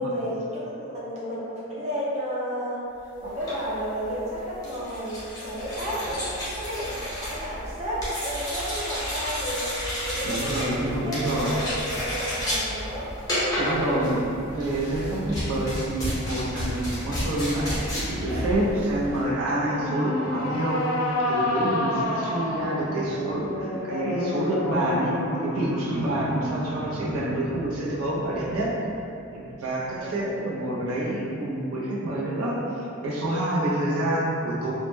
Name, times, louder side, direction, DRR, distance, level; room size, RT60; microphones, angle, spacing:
voice 1, 0.0-2.8 3.2-9.8 10.0-10.8 11.0-13.1 13.8-14.2 19.5-19.9 25.9-26.2 29.8-30.7, equal, 35° right, -8 dB, 0.5 m, -32 dB
sound 1, 3.3-19.3, equal, 15° left, 0.7 m, -31 dB
voice 2, 10.2-11.5 13.6-21.0 21.3-28.7 29.3-34.7, right 1 dB, 85° right, -6 dB, 0.5 m, -27 dB
sound 2, 19.5-28.9, left 2 dB, 70° left, 0.3 m, -30 dB
2.1 x 2.0 x 3.1 m, 2.7 s
head